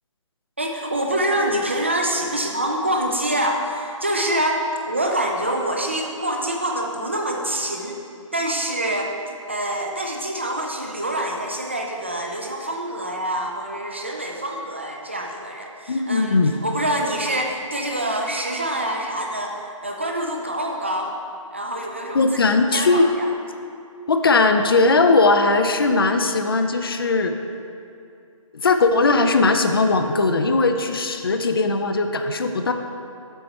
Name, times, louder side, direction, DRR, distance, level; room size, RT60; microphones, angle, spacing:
voice 1, 0.6-8.0 8.3-9.1 9.5-21.2 21.5-22.4 22.7-23.3, right 1 dB, 20° right, 1 dB, 0.3 m, -26 dB
voice 2, 15.9-16.5 22.1-23.1 24.1-27.3 28.5-32.7, left 3 dB, 45° left, 7 dB, 0.5 m, -19 dB
7.9 x 4.4 x 5.3 m, 2.5 s
hypercardioid pair, 170°, 17 cm